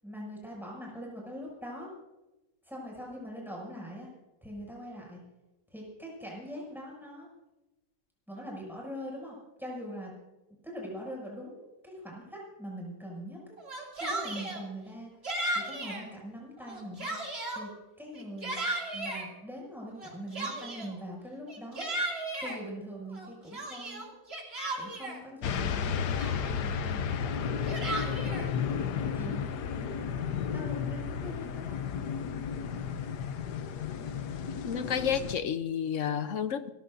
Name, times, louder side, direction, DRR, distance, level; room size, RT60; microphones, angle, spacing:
voice 1, 0.0-1.9 2.6-4.1 4.4-5.2 5.7-7.3 8.3-10.1 10.6-13.4 14.0-15.1 15.5-17.2 17.5-17.7 18.0-18.5 18.9-21.9 22.4-24.0 24.8-27.8 28.1-28.7 29.1-29.8 30.5-31.8, equal, ahead, 6.8 m, -42 dB
Yell, 13.6-14.6 15.2-16.0 16.6-17.6 18.1-19.3 20.0-21.0 21.5-22.6 23.1-25.2 25.8-25.9 26.2-26.7 27.4-28.5, right 2 dB, 40° right, 3.0 m, -35 dB
sound 1, 25.4-35.4, left 7 dB, 90° left, 1.4 m, -33 dB
voice 2, 34.7-36.7, left 8 dB, 60° left, 1.1 m, -30 dB
29.5 x 15.0 x 2.7 m
omnidirectional pair, 1.7 m